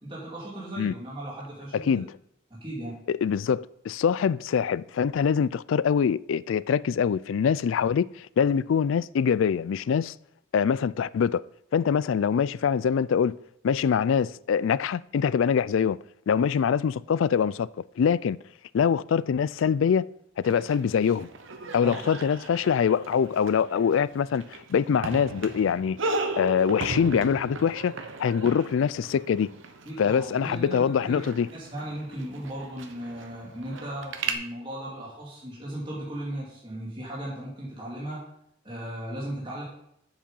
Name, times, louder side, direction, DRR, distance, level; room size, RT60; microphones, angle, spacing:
voice 1, 0.0-2.0 2.5-3.0 21.8-22.0 29.9-31.2 31.5-38.2 38.6-39.7, right 1 dB, 25° right, 2.4 m, -36 dB
voice 2, 1.7-2.1 3.1-10.1 10.5-11.4 11.7-13.4 13.6-16.0 16.3-17.7 18.0-18.4 18.7-20.1 20.4-21.3 21.7-26.0 26.4-27.9 28.2-29.5 30.0-31.5, left 7 dB, 75° left, 0.3 m, -24 dB
sound 1, 20.4-34.3, right 3 dB, 75° right, 0.9 m, -37 dB
7.3 x 7.3 x 5.4 m
head